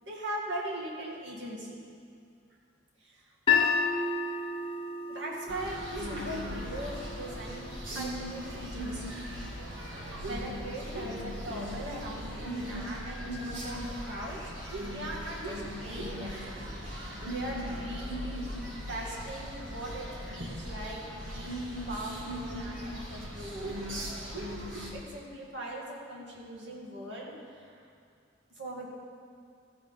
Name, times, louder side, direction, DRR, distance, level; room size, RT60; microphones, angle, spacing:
voice 1, 0.0-1.8 3.0-3.7 5.1-7.7 7.9-9.4 10.0-14.5 14.8-18.4 18.9-23.8 24.9-27.9 28.6-28.9, right 1 dB, 70° right, -4 dB, 2.1 m, -40 dB
sound 1, 3.5-9.6, left 5 dB, 30° left, 0.8 m, -33 dB
sound 2, 5.5-24.9, equal, 85° right, 1.5 m, -38 dB
14.5 x 5.3 x 5.6 m, 2.4 s
head